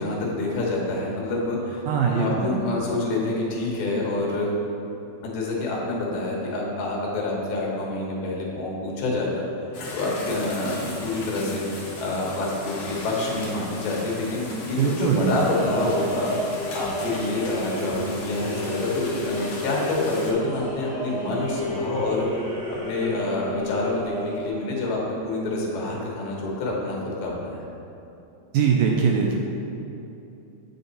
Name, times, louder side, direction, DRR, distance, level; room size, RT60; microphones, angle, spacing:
voice 1, 0.0-4.5 5.2-9.4 9.9-11.7 12.0-16.3 16.7-22.3 22.7-27.6, left 2 dB, 80° left, -3 dB, 3.2 m, -27 dB
voice 2, 1.9-2.6 14.8-15.3 28.5-29.3, right 6 dB, 80° right, 0 dB, 2.1 m, -21 dB
sound 1, 9.7-20.3, left 2 dB, 60° left, 1.8 m, -37 dB
sound 2, 15.3-24.5, equal, 45° left, 1.9 m, -32 dB
8.1 x 6.8 x 4.0 m, 2.8 s
omnidirectional pair, 4.4 m